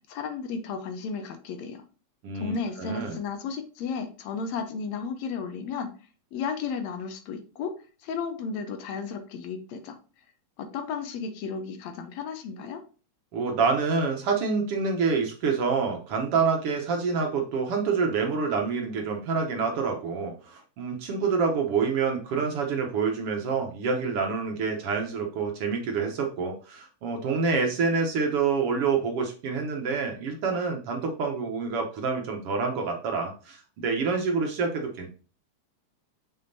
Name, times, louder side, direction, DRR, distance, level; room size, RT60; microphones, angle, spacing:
voice 1, 0.1-1.8 2.4-5.9 6.3-7.7 8.0-10.0 10.6-12.8, left 5 dB, 75° left, 8 dB, 2.0 m, -33 dB
voice 2, 2.2-3.2 13.3-35.1, right 5 dB, 65° right, 2 dB, 1.6 m, -27 dB
6.8 x 5.6 x 2.7 m, 0.36 s
omnidirectional pair, 3.3 m